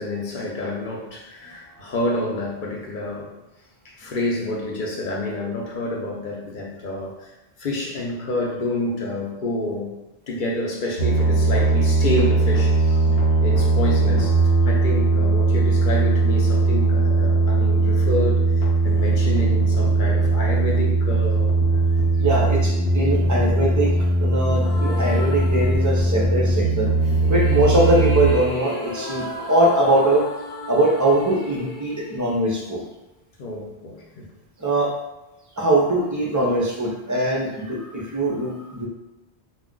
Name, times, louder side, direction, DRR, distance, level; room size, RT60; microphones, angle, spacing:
voice 1, 0.0-3.3 3.8-7.3 7.6-10.0 10.3-13.1 13.4-21.5 22.2-22.5 33.4-34.3, left 1 dB, 55° left, -2 dB, 0.7 m, -28 dB
sound 1, 11.0-28.3, right 3 dB, 85° left, 1.0 m, -19 dB
voice 2, 22.2-23.9 24.2-26.9 27.3-30.2 30.7-32.8 34.6-34.9 35.6-38.9, right 1 dB, 30° right, -3 dB, 0.3 m, -21 dB
sound 2, 24.6-26.3 27.0-33.1, left 1 dB, 25° left, 0.7 m, -35 dB
2.4 x 2.2 x 3.6 m, 0.97 s
omnidirectional pair, 1.1 m